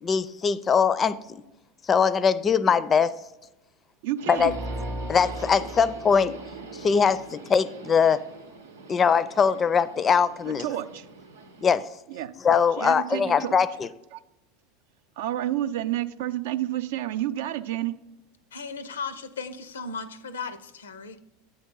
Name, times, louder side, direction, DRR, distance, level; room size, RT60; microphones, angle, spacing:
voice 1, 0.0-1.4 1.9-3.1 4.3-4.5 5.1-6.4 6.8-8.2 8.9-10.7 11.6-11.8 12.4-13.9, left 6 dB, 30° left, 17 dB, 0.4 m, -22 dB
voice 2, 4.0-4.5 10.6-11.1 12.1-12.3 12.8-13.6 14.1-14.2 15.2-18.0, right 13 dB, 65° right, 12 dB, 0.4 m, -30 dB
Subway metro underground, 4.2-11.8, right 4 dB, 85° right, 0.7 m, -43 dB
sound 1, 4.3-7.2, equal, 25° right, 0.6 m, -37 dB
voice 3, 18.5-21.2, left 4 dB, 80° left, 14 dB, 0.5 m, -36 dB
8.7 x 3.6 x 5.3 m, 0.96 s
hypercardioid pair, 85°, 0 cm